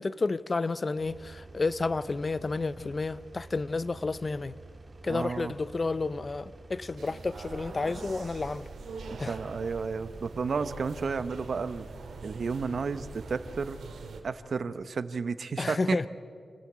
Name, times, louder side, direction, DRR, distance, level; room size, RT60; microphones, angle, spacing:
voice 1, 0.0-4.6 5.0-8.7 9.2-9.4 15.6-16.1, left 3 dB, 35° left, 0.5 m, -31 dB
Engine, 0.9-13.6, right 2 dB, 30° right, 1.9 m, -50 dB
voice 2, 5.1-5.5 9.1-11.9 12.2-13.8 14.2-16.0, right 5 dB, 60° right, 0.9 m, -32 dB
sound 1, 7.0-14.2, right 4 dB, 90° right, 2.2 m, -44 dB
27.5 x 14.0 x 8.7 m
wide cardioid pair, 90°, 0 cm